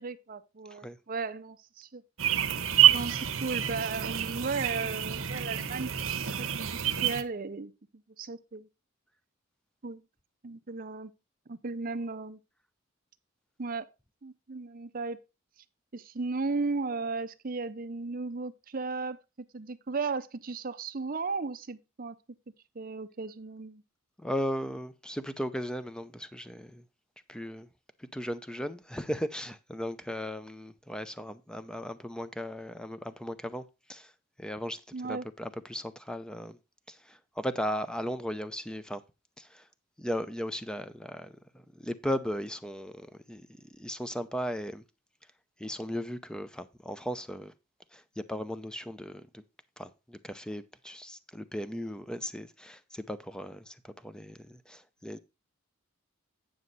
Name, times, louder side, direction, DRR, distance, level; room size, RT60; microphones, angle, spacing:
voice 1, 0.0-2.0 2.9-7.7 8.2-8.7 9.8-10.0 10.4-11.1 11.5-12.4 13.6-13.9 14.2-15.2 15.9-19.2 19.5-22.2 22.7-23.8 34.9-35.3, right 4 dB, 40° right, 0.6 m, -35 dB
sound 1, 2.2-7.2, right 10 dB, 70° right, 1.0 m, -27 dB
voice 2, 24.2-26.8 27.3-27.7 28.1-33.6 33.9-34.1 34.4-34.8 35.0-36.6 36.9-39.0 39.4-39.6 40.0-41.3 41.8-43.5 43.7-44.8 45.6-47.5 47.9-48.0 48.3-49.4 49.8-55.2, equal, 5° left, 0.5 m, -36 dB
9.5 x 6.2 x 4.0 m
head